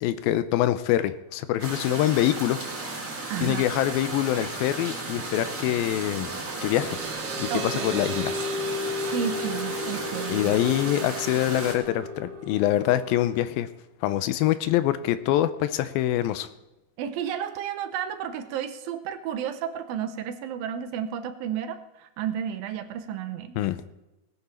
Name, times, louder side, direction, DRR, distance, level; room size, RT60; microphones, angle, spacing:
voice 1, 0.0-2.6 3.4-6.3 6.6-7.0 7.4-8.3 10.3-13.7 14.0-16.5 23.6-23.8, left 13 dB, 90° left, 13 dB, 2.5 m, -25 dB
sound 1, 1.6-11.7, right 3 dB, 25° right, 2.0 m, -34 dB
voice 2, 3.3-3.6 7.5-8.0 9.1-10.5 17.0-23.6, right 9 dB, 80° right, 10 dB, 2.6 m, -32 dB
sound 2, 6.4-13.4, left 1 dB, 60° right, 1.6 m, -34 dB
18.0 x 10.5 x 4.3 m, 0.95 s
omnidirectional pair, 4.2 m